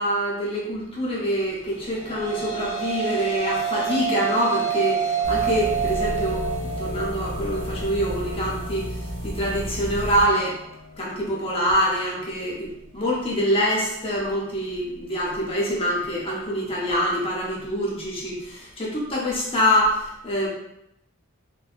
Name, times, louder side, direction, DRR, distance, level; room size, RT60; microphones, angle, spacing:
voice 1, 0.0-6.4 6.8-8.8 9.2-10.6 11.0-20.5, equal, 25° left, -5 dB, 0.6 m, -25 dB
sound 1, 1.8-10.3, right 6 dB, 70° left, 0.4 m, -28 dB
sound 2, 5.2-10.2, equal, 80° right, 0.9 m, -32 dB
2.7 x 2.2 x 2.4 m, 0.84 s
head